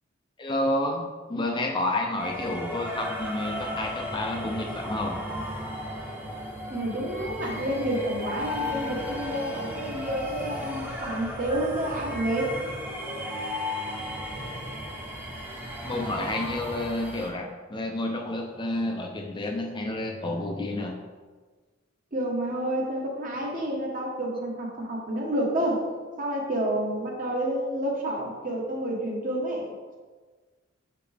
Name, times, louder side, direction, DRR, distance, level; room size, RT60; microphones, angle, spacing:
voice 1, 0.4-5.2 15.8-21.0, left 1 dB, 25° left, 1 dB, 0.5 m, -30 dB
sound 1, 2.2-17.3, left 1 dB, 10° right, 0.8 m, -35 dB
voice 2, 6.7-12.5 22.1-25.8 26.2-30.0, right 1 dB, 40° right, -1 dB, 1.2 m, -29 dB
5.9 x 5.0 x 3.4 m, 1.4 s
head